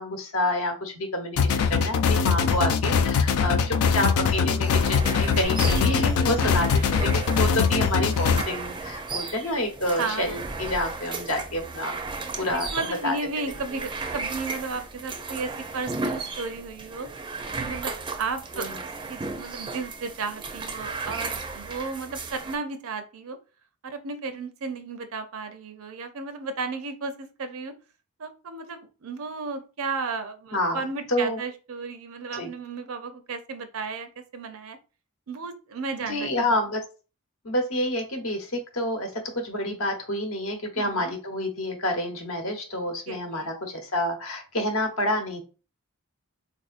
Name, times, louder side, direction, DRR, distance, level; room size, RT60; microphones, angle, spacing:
voice 1, 0.0-6.7 7.0-12.0 12.4-12.7 13.0-13.2 18.5-18.8 30.5-30.8 31.1-31.4 32.4-32.5 36.1-36.8 37.4-45.4, left 1 dB, 70° left, 4 dB, 1.0 m, -28 dB
sound 1, 1.4-8.4, left 6 dB, 90° left, 0.3 m, -22 dB
voice 2, 3.4-3.9 6.4-6.5 10.0-10.5 12.4-17.1 17.6-18.7 19.1-23.4 23.8-27.7 28.2-34.8 35.3-36.6 40.7-41.1 43.1-43.5, right 4 dB, 70° right, 8 dB, 0.5 m, -34 dB
sound 2, 4.7-22.6, right 3 dB, 20° right, 0.4 m, -35 dB
sound 3, 5.4-10.0 10.8-10.9, equal, 20° left, 0.6 m, -37 dB
4.0 x 2.6 x 2.4 m, 0.34 s
head